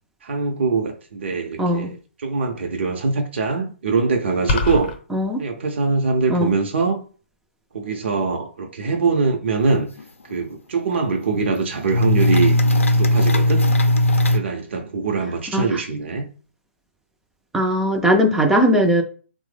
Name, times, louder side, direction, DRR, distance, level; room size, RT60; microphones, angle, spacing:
voice 1, 0.2-2.0 2.2-4.9 5.4-7.0 7.7-9.9 10.3-12.6 13.0-13.7 14.3-16.3, right 4 dB, 55° right, 0.6 m, -23 dB
voice 2, 1.6-1.9 5.1-5.4 6.3-6.5 15.5-15.8 17.5-19.0, equal, 5° right, 0.4 m, -19 dB
sound 1, 4.5-5.0, left 3 dB, 45° left, 0.7 m, -22 dB
sound 2, 10.0-10.1 10.3-10.4 10.9-11.5 11.9-14.4, left 1 dB, 80° left, 0.5 m, -18 dB
3.2 x 2.0 x 3.2 m
figure-of-eight pair, 130°, 7 cm